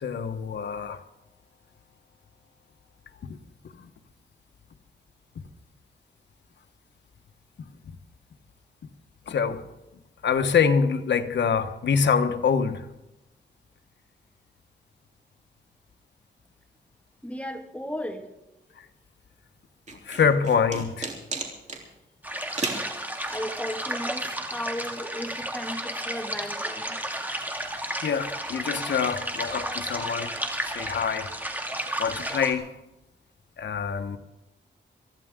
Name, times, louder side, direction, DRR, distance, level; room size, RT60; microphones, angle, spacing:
voice 1, 0.0-1.0 9.3-9.6 10.2-12.8 20.1-21.1 28.0-30.3 30.6-31.3 32.0-32.7 33.6-34.2, left 6 dB, 80° left, 1.2 m, -25 dB
voice 2, 17.2-18.3 23.2-27.0, equal, 5° left, 1.8 m, -35 dB
sound 1, 19.9-21.8 22.6-22.9, right 3 dB, 40° right, 3.3 m, -32 dB
sound 2, 22.2-32.5, right 1 dB, 10° right, 2.3 m, -32 dB
24.0 x 15.0 x 3.7 m
wide cardioid pair, 95°, 18 cm